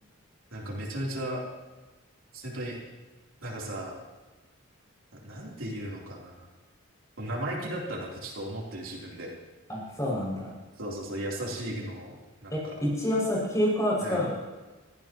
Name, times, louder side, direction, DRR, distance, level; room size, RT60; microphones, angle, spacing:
voice 1, 0.5-1.4 2.3-2.8 3.4-4.0 5.2-6.5 7.2-9.3 10.8-12.2 12.4-12.6 14.0-14.2, right 1 dB, 70° right, -3 dB, 3.6 m, -35 dB
voice 2, 9.7-10.4 12.5-14.3, left 1 dB, 15° left, -5 dB, 6.6 m, -27 dB
23.0 x 15.5 x 3.1 m, 1.2 s
head